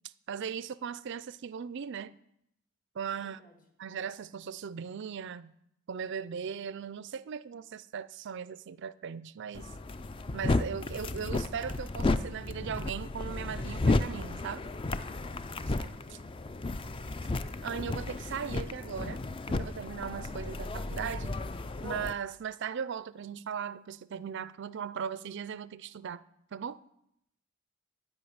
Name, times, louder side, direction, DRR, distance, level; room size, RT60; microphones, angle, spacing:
voice 1, 0.3-2.1 3.0-3.4 3.8-5.5 5.9-9.7 10.3-14.6 15.8-16.2 17.6-19.2 19.5-21.4 21.8-26.2 26.5-26.8, right 7 dB, 55° right, 0.4 m, -38 dB
voice 2, 3.2-3.6 14.4-14.8, left 1 dB, 40° left, 1.9 m, -60 dB
sound 1, 9.5-22.1, left 2 dB, 25° left, 0.4 m, -33 dB
11.5 x 5.5 x 8.7 m
head